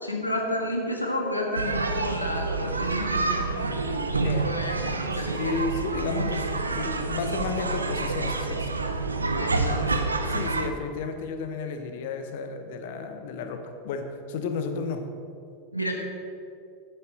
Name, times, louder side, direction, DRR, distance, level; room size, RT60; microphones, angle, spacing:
voice 1, 0.0-3.5 4.1-5.6 9.3-10.0 15.7-15.9, left 1 dB, 90° left, 1 dB, 1.6 m, -31 dB
sound 1, 1.5-10.7, right 3 dB, 80° right, 0.7 m, -28 dB
voice 2, 5.1-8.7 9.8-10.0 10.3-15.0, left 4 dB, 55° left, 6 dB, 1.2 m, -33 dB
9.0 x 8.1 x 6.3 m, 2.4 s
figure-of-eight pair, 85°, 0 cm